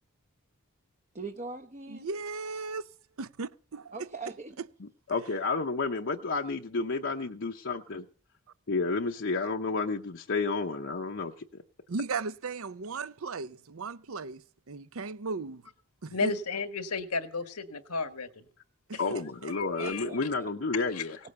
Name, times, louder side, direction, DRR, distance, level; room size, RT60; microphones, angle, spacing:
voice 1, 1.1-2.1 3.9-4.6 19.8-20.5, right 4 dB, 30° right, 0.8 m, -41 dB
voice 2, 1.9-2.9 3.2-4.0 11.9-15.6 16.0-16.3 18.9-19.5, right 4 dB, 70° right, 0.7 m, -36 dB
voice 3, 5.1-8.1 8.7-11.3 19.0-21.2, left 3 dB, 55° left, 0.8 m, -31 dB
voice 4, 16.1-18.4 18.9-19.0 19.5-20.0 20.9-21.1, left 4 dB, 90° left, 1.6 m, -33 dB
18.0 x 8.4 x 6.9 m
head